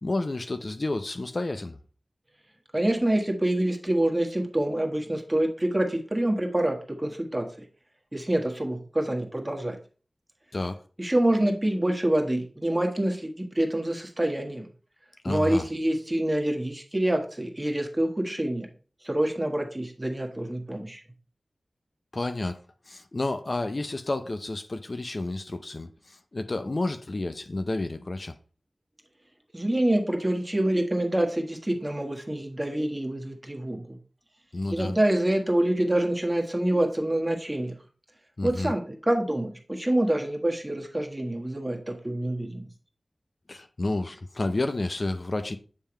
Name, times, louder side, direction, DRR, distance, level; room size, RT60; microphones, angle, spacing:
voice 1, 0.0-1.8 10.5-10.8 15.2-15.7 22.1-22.6 22.9-28.3 34.5-34.9 38.4-38.7 43.5-45.6, left 2 dB, 55° left, 0.6 m, -30 dB
voice 2, 2.7-7.5 8.1-9.8 11.0-14.7 15.2-18.7 19.0-21.0 29.5-34.0 34.7-37.7 38.4-42.7, right 1 dB, 20° right, 1.5 m, -26 dB
7.4 x 3.5 x 4.4 m
wide cardioid pair, 50°, 0 cm